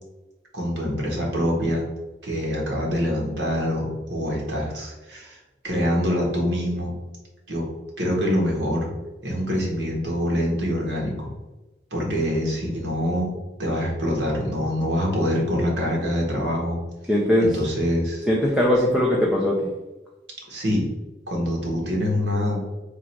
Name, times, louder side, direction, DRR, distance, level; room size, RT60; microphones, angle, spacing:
voice 1, 0.5-1.8 2.2-6.9 7.5-7.7 8.0-8.9 9.2-11.3 11.9-13.3 13.6-16.8 17.4-18.3 20.5-20.9 21.3-22.6, equal, 85° right, -2 dB, 1.3 m, -25 dB
voice 2, 17.1-17.6 18.3-19.7, left 1 dB, 5° right, -4 dB, 0.5 m, -20 dB
3.7 x 2.5 x 4.4 m, 1.1 s
head